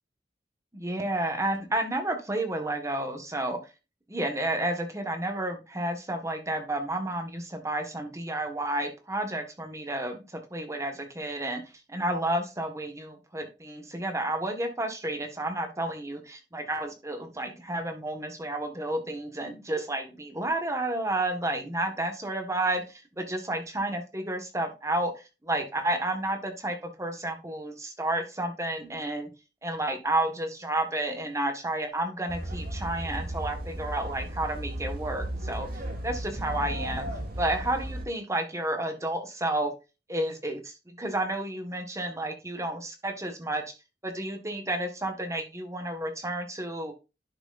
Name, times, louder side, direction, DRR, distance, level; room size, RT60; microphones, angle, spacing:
voice 1, 0.7-3.6 4.1-11.6 11.9-29.3 29.6-35.7 36.0-37.1 37.4-39.7 40.1-43.6 44.0-46.9, right 1 dB, 20° right, 5 dB, 1.5 m, -31 dB
sound 1, 32.3-38.0, right 1 dB, 55° right, 2.5 m, -35 dB
10.5 x 6.1 x 2.6 m, 0.28 s
head